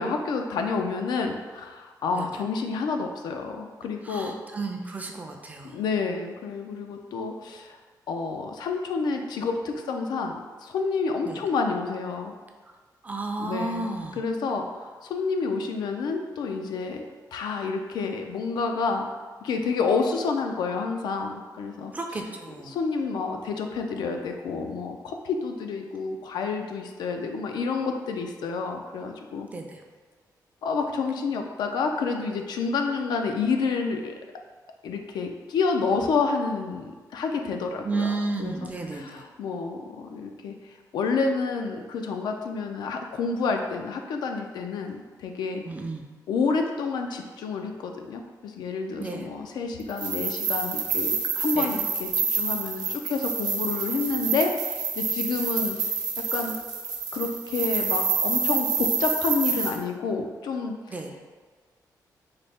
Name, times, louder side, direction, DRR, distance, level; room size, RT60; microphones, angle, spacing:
voice 1, 0.0-4.3 5.7-7.8 8.1-10.3 10.6-12.3 13.4-13.9 14.2-17.0 17.3-19.1 19.4-21.9 22.7-29.5 30.6-34.1 34.8-40.5 40.9-45.6 46.3-55.8 56.3-56.5 57.1-60.8, left 4 dB, 85° left, 4 dB, 0.3 m, -29 dB
voice 2, 4.0-5.8 11.3-11.4 13.0-14.2 21.9-22.7 29.5-29.8 37.8-39.2 45.6-46.0 49.0-49.3 51.5-51.7 60.9-61.1, right 3 dB, 20° right, 3 dB, 0.4 m, -32 dB
sound 1, 49.9-59.7, right 5 dB, 60° right, 0.7 m, -28 dB
4.0 x 2.0 x 3.4 m, 1.4 s
cardioid pair, 120°, 7 cm